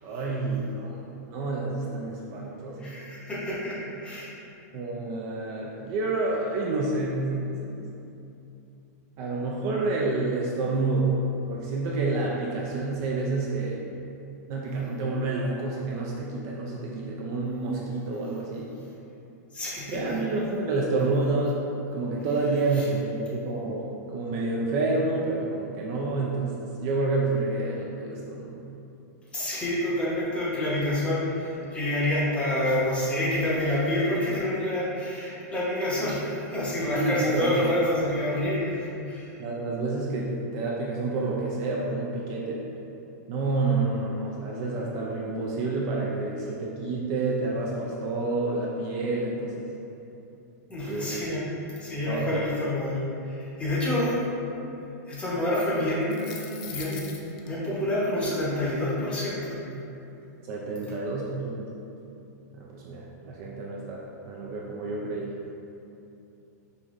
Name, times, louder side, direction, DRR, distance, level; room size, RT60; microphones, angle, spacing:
voice 1, 0.0-3.0 4.7-7.9 9.2-13.8 14.5-18.7 19.9-21.6 21.9-28.6 36.9-37.5 39.4-42.6 43.3-49.5 50.9-51.2 52.1-52.4 60.5-61.7 62.5-65.3, right 3 dB, 35° right, -3 dB, 0.4 m, -29 dB
voice 2, 2.8-4.3 19.5-20.2 22.7-22.8 29.3-39.3 50.7-53.0 53.2-54.1 55.1-59.6, left 1 dB, 10° left, -7 dB, 0.8 m, -28 dB
sound 1, 56.0-57.5, left 7 dB, 35° left, 0.4 m, -41 dB
5.2 x 3.0 x 2.4 m, 2.8 s
supercardioid pair, 155°, 9 cm